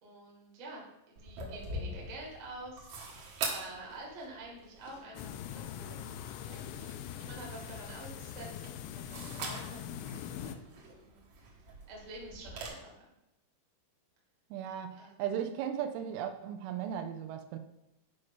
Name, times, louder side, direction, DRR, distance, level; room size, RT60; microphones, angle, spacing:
voice 1, 0.0-2.9 3.5-6.1 6.4-11.3 11.9-13.0 15.0-15.2, right 2 dB, 40° right, -3 dB, 1.1 m, -48 dB
sound 1, 1.1-12.7, right 2 dB, 65° right, 1.8 m, -44 dB
sound 2, 5.2-10.6, left 9 dB, 85° left, 2.9 m, -42 dB
voice 2, 14.5-17.6, right 9 dB, 85° right, 7 dB, 3.0 m, -36 dB
9.4 x 5.4 x 5.4 m, 0.88 s
omnidirectional pair, 5.8 m